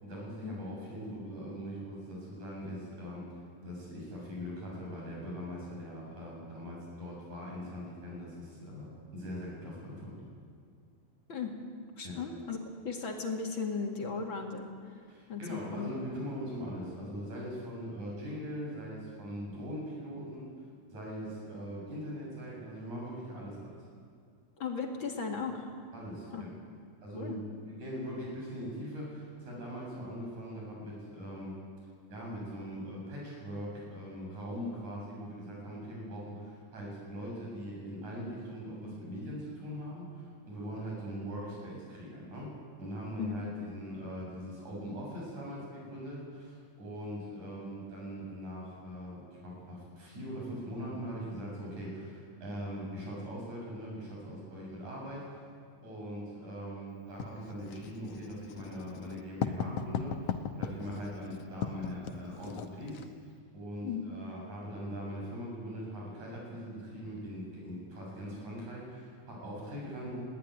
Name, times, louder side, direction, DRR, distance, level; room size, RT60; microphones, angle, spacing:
voice 1, 0.0-10.3 12.0-12.2 15.1-20.5 20.9-23.7 25.9-26.5 27.0-27.4 27.7-31.5 32.1-55.4 55.8-63.0 63.5-70.2, equal, 85° right, -3 dB, 8.5 m, -41 dB
voice 2, 12.0-12.6 12.8-14.7 15.3-15.9 24.6-25.7 26.3-26.4 27.1-27.4 43.2-43.4 63.8-64.0, left 5 dB, 45° left, 2 dB, 2.7 m, -36 dB
Writing, 57.2-63.1, left 7 dB, 75° left, 2.2 m, -38 dB
21.0 x 15.5 x 9.6 m, 2.2 s
omnidirectional pair, 3.3 m